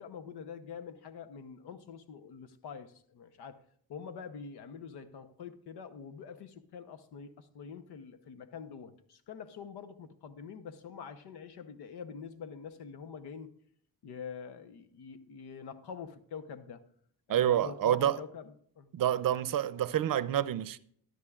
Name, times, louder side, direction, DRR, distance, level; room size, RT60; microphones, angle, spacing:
voice 1, 0.0-3.6 3.9-13.6 14.0-16.9 17.3-18.9, left 6 dB, 85° left, 0.9 m, -45 dB
voice 2, 17.3-18.2 18.9-20.8, right 11 dB, 60° right, 0.6 m, -28 dB
13.0 x 10.5 x 2.4 m
cardioid pair, 70°, 38 cm